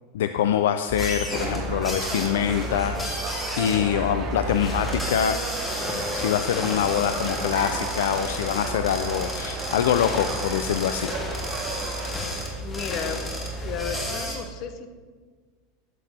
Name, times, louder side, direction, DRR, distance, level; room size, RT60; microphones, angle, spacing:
voice 1, 0.1-5.4 6.1-11.1, left 9 dB, 70° left, 9 dB, 0.3 m, -25 dB
sound 1, 0.9-14.4, equal, 10° left, 2.5 m, -32 dB
sound 2, 1.2-13.8, left 2 dB, 30° left, 1.7 m, -38 dB
sound 3, 1.3-12.1, right 5 dB, 45° right, 0.9 m, -35 dB
voice 2, 12.6-13.2 13.6-14.9, left 7 dB, 50° left, 9 dB, 0.8 m, -33 dB
12.5 x 7.7 x 2.8 m, 1.5 s
hypercardioid pair, 85°, 0 cm